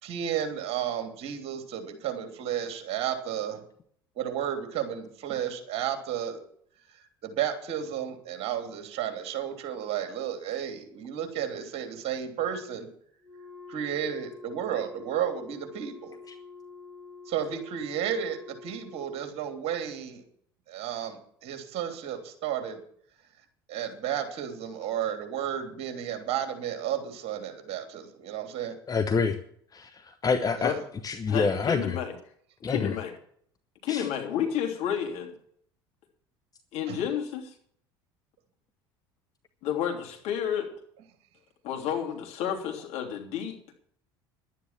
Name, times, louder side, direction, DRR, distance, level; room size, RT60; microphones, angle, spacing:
voice 1, 0.0-3.6 4.2-6.4 7.2-12.9 13.7-16.2 17.3-20.2 20.7-22.8 23.7-28.7 30.6-30.8 36.9-37.0, right 9 dB, 55° right, 5 dB, 3.1 m, -32 dB
Wind instrument woodwind instrument, 13.2-19.3, left 4 dB, 5° left, 5.8 m, -47 dB
voice 2, 28.9-29.4 29.7-30.7 31.0-32.0 32.6-33.0 33.9-34.1, left 5 dB, 30° left, 8 dB, 1.1 m, -27 dB
voice 3, 31.3-32.1 32.7-33.1 33.8-35.3 36.7-37.5 39.6-40.7 41.6-43.6, left 9 dB, 55° left, 1 dB, 3.2 m, -31 dB
11.5 x 9.8 x 7.4 m, 0.62 s
hypercardioid pair, 70°, 13 cm